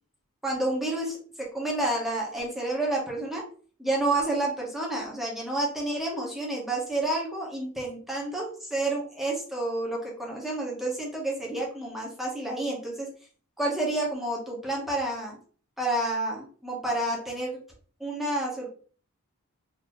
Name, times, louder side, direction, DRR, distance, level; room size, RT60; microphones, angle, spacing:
voice 1, 0.4-1.2 1.5-3.4 3.8-13.1 13.6-15.4 15.8-17.6 18.0-18.7, right 2 dB, ahead, -3 dB, 1.1 m, -29 dB
4.0 x 2.8 x 3.0 m, 0.43 s
head